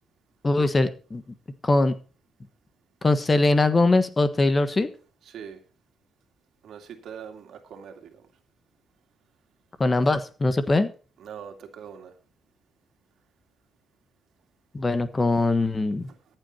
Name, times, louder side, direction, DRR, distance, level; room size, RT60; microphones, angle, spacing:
voice 1, 0.4-1.2 1.6-1.9 3.0-4.9 9.8-10.9 14.7-16.1, left 2 dB, 25° left, 11 dB, 1.3 m, -21 dB
voice 2, 5.3-5.6 6.6-8.2 11.2-12.1, right 7 dB, 70° right, 5 dB, 2.4 m, -42 dB
14.0 x 8.0 x 4.4 m, 0.37 s
cardioid pair, 90°, 0 cm